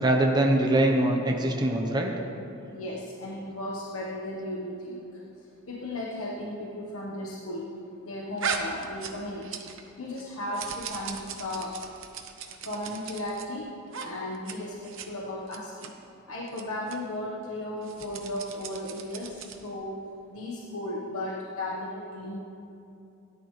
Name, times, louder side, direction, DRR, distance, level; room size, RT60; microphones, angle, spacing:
voice 1, 0.0-2.1, right 1 dB, 20° right, 0 dB, 1.0 m, -23 dB
voice 2, 2.7-5.2 5.7-7.7 8.0-9.6 10.0-11.8 12.6-13.7 14.0-15.9 16.3-20.0 20.3-22.4, left 1 dB, 85° left, -5 dB, 1.4 m, -35 dB
sound 1, 8.4-9.9 10.2-13.5 13.9-14.1 14.3-14.6 14.8-15.1 15.5-15.9 16.5-16.6 16.9-17.0 17.8-19.7, right 6 dB, 65° right, 1.0 m, -37 dB
17.0 x 11.0 x 3.3 m, 2.8 s
head